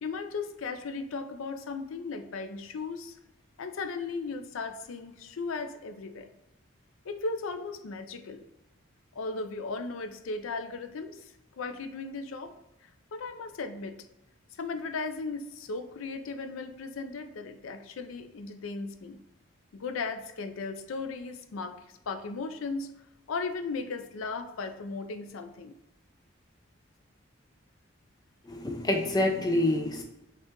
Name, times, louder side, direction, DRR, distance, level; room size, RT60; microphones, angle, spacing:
voice 1, 0.0-3.2 3.6-6.3 7.0-8.4 9.2-11.3 11.6-12.5 13.1-14.0 14.6-19.2 19.7-21.8 22.1-22.9 23.3-25.8, left 4 dB, 80° left, 7 dB, 0.4 m, -36 dB
voice 2, 28.5-30.0, left 1 dB, 20° left, 3 dB, 0.4 m, -27 dB
5.1 x 2.4 x 3.6 m, 0.92 s
head